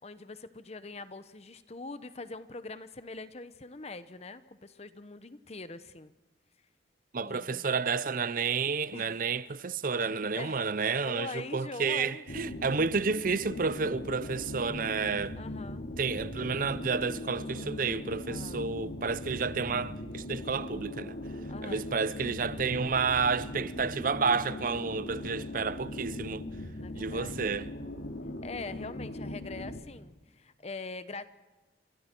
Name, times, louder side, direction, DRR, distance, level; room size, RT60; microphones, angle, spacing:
voice 1, 0.0-6.1 7.2-7.6 8.9-9.2 10.3-10.6 11.0-12.2 15.4-15.9 18.2-18.6 21.5-22.2 26.5-27.5 28.4-31.2, left 3 dB, 35° left, 0.9 m, -43 dB
voice 2, 7.1-15.4 16.0-21.2 21.6-26.5 26.9-27.7, right 5 dB, 50° right, 0.7 m, -30 dB
sound 1, 12.3-29.8, left 1 dB, 80° left, 2.7 m, -40 dB
30.0 x 25.5 x 4.5 m
head